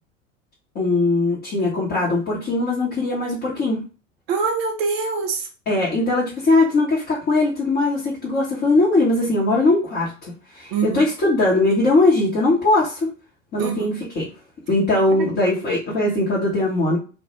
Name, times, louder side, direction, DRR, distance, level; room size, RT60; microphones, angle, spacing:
voice 1, 0.7-3.8 5.7-13.1 13.5-14.3 14.7-17.0, left 2 dB, 25° left, -6 dB, 0.7 m, -20 dB
voice 2, 4.3-5.5 10.7-11.1 13.6-14.0 15.2-15.3, right 5 dB, 50° right, 4 dB, 0.7 m, -24 dB
2.0 x 2.0 x 3.0 m, 0.35 s
figure-of-eight pair, 80°, 39 cm